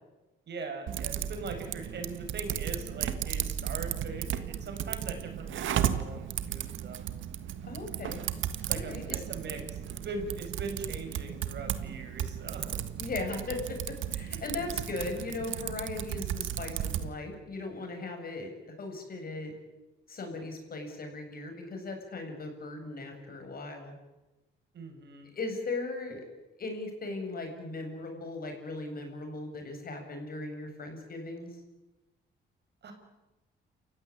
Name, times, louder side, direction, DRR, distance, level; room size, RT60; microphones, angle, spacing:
voice 1, 0.5-7.0 8.7-12.8 24.7-25.3 32.8-32.9, right 3 dB, 60° right, 5 dB, 6.4 m, -41 dB
Typing, 0.9-17.1, right 10 dB, 75° right, 1.7 m, -35 dB
voice 2, 7.6-8.2 8.7-9.2 13.0-19.5 20.1-23.9 25.3-26.2 26.6-31.5, left 3 dB, 50° left, 4 dB, 7.8 m, -38 dB
28.5 x 16.0 x 9.9 m, 1.1 s
cardioid pair, 90°, 20 cm